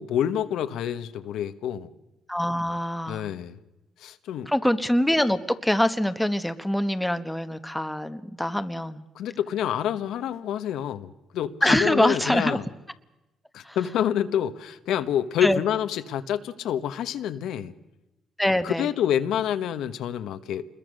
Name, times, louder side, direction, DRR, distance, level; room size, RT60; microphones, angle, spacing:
voice 1, 0.0-1.9 3.1-3.6 4.0-4.5 9.1-12.6 13.5-17.7 18.6-20.6, left 10 dB, 80° left, 9 dB, 1.2 m, -27 dB
voice 2, 2.3-3.2 4.5-9.0 11.6-12.6 13.6-13.8 15.4-15.6 18.4-18.9, left 1 dB, 5° left, 9 dB, 1.3 m, -24 dB
27.0 x 21.5 x 6.5 m, 0.98 s
cardioid pair, 90°, 0 cm